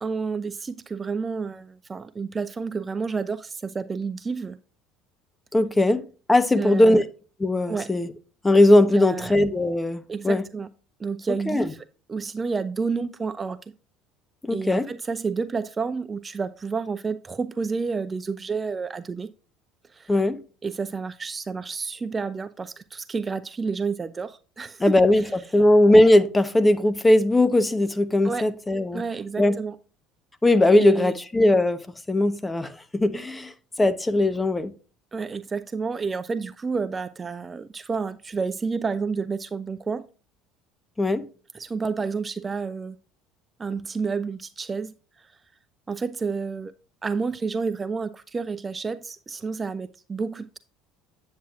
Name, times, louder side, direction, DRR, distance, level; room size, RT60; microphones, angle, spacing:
voice 1, 0.0-4.6 6.6-7.0 7.7-7.9 8.9-9.3 10.1-10.7 11.0-13.6 14.5-19.3 19.9-20.1 20.6-25.2 28.2-28.5 28.9-29.8 30.7-31.1 35.1-40.0 41.5-43.0 43.6-45.3 45.9-46.7 47.0-50.6, right 5 dB, 25° right, 0.4 m, -30 dB
voice 2, 5.5-7.0 7.4-8.1 8.4-10.4 11.5-11.7 14.4-14.9 20.1-20.4 24.8-29.0 29.4-29.6 30.4-33.5 33.8-34.7 41.0-41.2, left 1 dB, 15° left, 0.9 m, -19 dB
8.5 x 7.3 x 2.4 m
hypercardioid pair, 70°, 0 cm